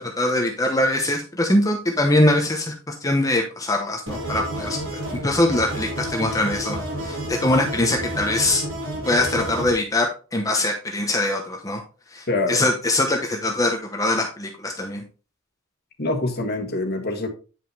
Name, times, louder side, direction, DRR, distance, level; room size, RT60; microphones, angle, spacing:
voice 1, 0.0-8.6 9.0-11.8 12.1-15.0, left 1 dB, 15° left, 1.0 m, -22 dB
sound 1, 4.1-9.7, right 1 dB, 80° right, 3.6 m, -30 dB
voice 2, 12.3-12.7 16.0-17.3, left 2 dB, 55° left, 1.7 m, -25 dB
9.3 x 5.5 x 3.3 m
head